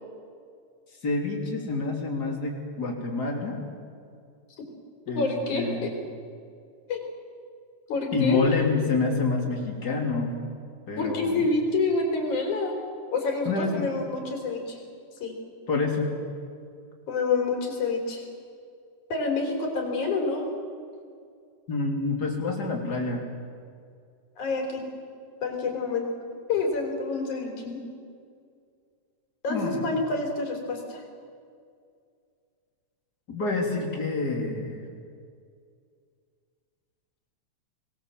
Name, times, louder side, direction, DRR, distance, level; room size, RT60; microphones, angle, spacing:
voice 1, 1.0-3.6 5.1-5.3 5.5-5.9 8.1-10.4 10.9-11.4 13.5-13.7 15.7-16.2 21.7-23.2 29.5-29.9 33.3-34.8, left 3 dB, 35° left, 1 dB, 3.6 m, -27 dB
voice 2, 5.1-5.9 6.9-7.0 7.9-8.4 11.0-12.7 13.1-14.8 15.2-15.3 17.1-18.3 19.1-20.4 24.4-24.8 25.4-26.1 26.5-27.8 29.4-31.0, left 3 dB, 90° left, 2 dB, 5.1 m, -27 dB
25.0 x 20.0 x 7.6 m, 2.2 s
omnidirectional pair, 3.3 m